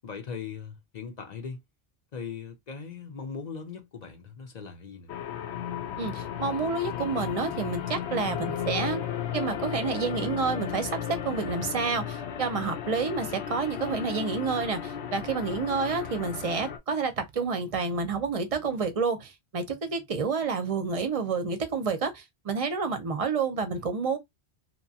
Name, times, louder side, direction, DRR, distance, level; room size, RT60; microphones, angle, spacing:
voice 1, 0.0-1.6 2.1-5.1, left 5 dB, 50° left, 0.6 m, -39 dB
sound 1, 5.1-16.8, left 9 dB, 85° left, 0.9 m, -34 dB
voice 2, 6.0-9.1 9.3-24.2, right 4 dB, 45° right, 0.5 m, -29 dB
2.8 x 2.2 x 2.7 m
omnidirectional pair, 1.1 m